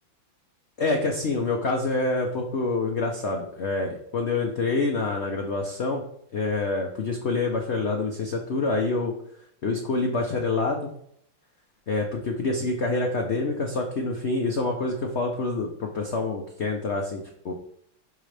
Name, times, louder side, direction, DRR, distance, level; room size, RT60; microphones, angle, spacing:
voice 1, 0.8-6.0 6.3-9.1 9.6-10.9 11.9-17.5, left 3 dB, 55° left, 1 dB, 0.7 m, -27 dB
11.5 x 3.8 x 3.4 m, 0.68 s
omnidirectional pair, 2.2 m